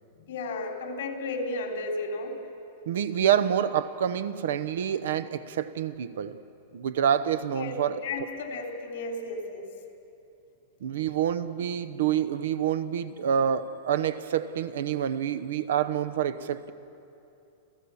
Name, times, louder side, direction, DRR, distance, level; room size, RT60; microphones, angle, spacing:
voice 1, 0.2-2.4 7.5-9.7, left 2 dB, 60° left, 3.7 m, -34 dB
voice 2, 2.9-6.4 6.7-8.0 10.8-16.7, right 9 dB, 75° right, 0.9 m, -27 dB
29.5 x 15.0 x 7.1 m
supercardioid pair, 175°, 0 cm